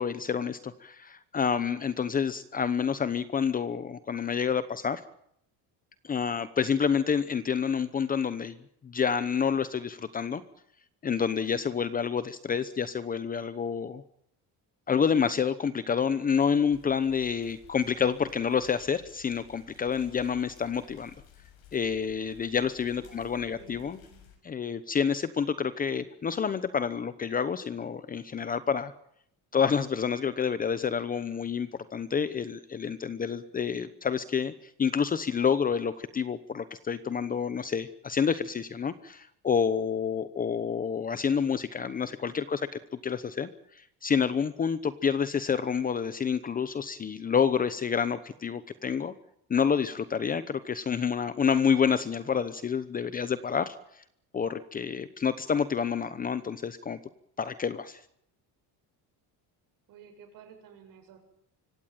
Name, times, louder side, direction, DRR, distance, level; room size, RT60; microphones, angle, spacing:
voice 1, 0.0-5.0 6.0-10.4 11.0-14.0 14.9-21.1 21.7-24.0 24.4-28.9 29.5-34.5 34.8-42.7 43.0-43.5 43.7-49.1 49.5-53.7 54.3-57.0 57.4-58.0, left 6 dB, 20° left, 13 dB, 0.9 m, -28 dB
sound 1, 16.7-24.4, left 9 dB, 65° left, 6.7 m, -55 dB
voice 2, 22.9-24.3 59.9-61.2, right 7 dB, 55° right, 5 dB, 7.7 m, -53 dB
25.0 x 17.0 x 9.1 m, 0.72 s
cardioid pair, 175°, 39 cm